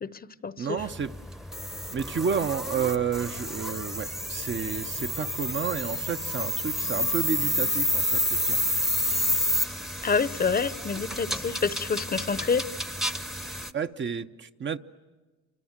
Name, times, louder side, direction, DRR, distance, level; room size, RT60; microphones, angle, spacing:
voice 1, 0.0-0.8 10.0-12.7, left 5 dB, 30° left, 15 dB, 0.7 m, -27 dB
voice 2, 0.6-1.1 1.9-8.6 13.7-14.8, right 7 dB, 40° right, 9 dB, 0.7 m, -31 dB
sound 1, 0.8-13.7, left 1 dB, ahead, 0.8 m, -30 dB
28.0 x 26.0 x 7.4 m, 1.3 s
cardioid pair, 90°, 30 cm